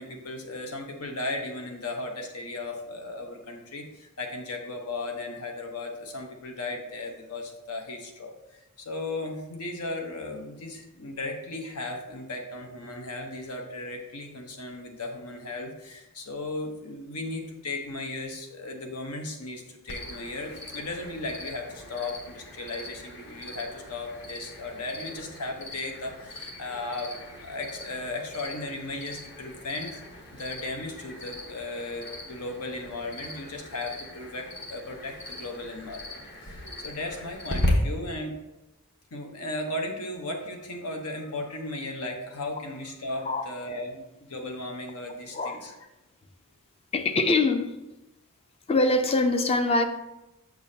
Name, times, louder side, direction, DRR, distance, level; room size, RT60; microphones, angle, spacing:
voice 1, 0.0-30.0 30.3-38.4 39.1-44.0 44.3-45.8, left 2 dB, 85° left, 3 dB, 1.0 m, -36 dB
Cricket, 19.9-37.7, left 1 dB, 50° left, 1.2 m, -40 dB
voice 2, 46.9-47.7 48.7-49.9, left 2 dB, 25° left, 7 dB, 0.4 m, -23 dB
7.0 x 6.2 x 2.8 m, 0.99 s
head